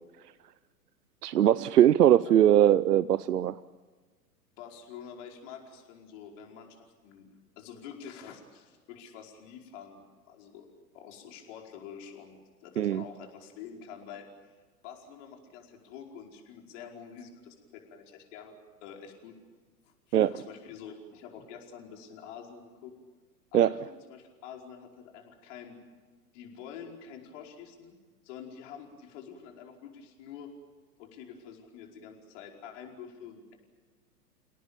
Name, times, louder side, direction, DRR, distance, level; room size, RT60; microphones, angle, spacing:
voice 1, 1.2-3.6 12.8-13.0 20.1-20.3 23.5-23.7, right 11 dB, 75° right, 17 dB, 0.7 m, -21 dB
voice 2, 4.6-6.8 7.0-10.7 10.9-14.5 14.8-18.5 18.8-19.3 19.8-22.9 23.5-25.8 26.3-28.0 28.2-30.5 31.0-33.5, left 7 dB, 50° left, 2 dB, 5.0 m, -47 dB
29.0 x 18.0 x 8.8 m, 1.4 s
figure-of-eight pair, 105°, 48 cm